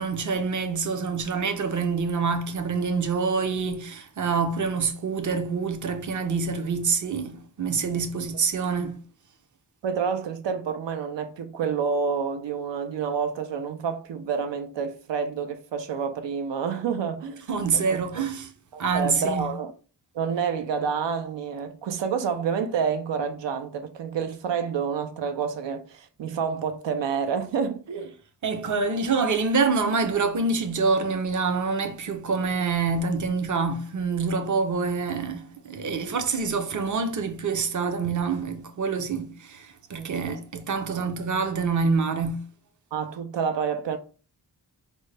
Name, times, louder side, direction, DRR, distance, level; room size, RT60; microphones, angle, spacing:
voice 1, 0.0-9.0 17.5-18.5 18.8-19.5 28.4-42.4, right 4 dB, 45° right, 0.6 m, -26 dB
voice 2, 9.8-17.5 17.7-18.2 18.7-19.7 20.1-28.1 39.9-40.4 40.7-41.1 42.9-44.0, right 6 dB, 85° right, 0.6 m, -29 dB
5.1 x 2.1 x 3.2 m
wide cardioid pair, 135°, 42 cm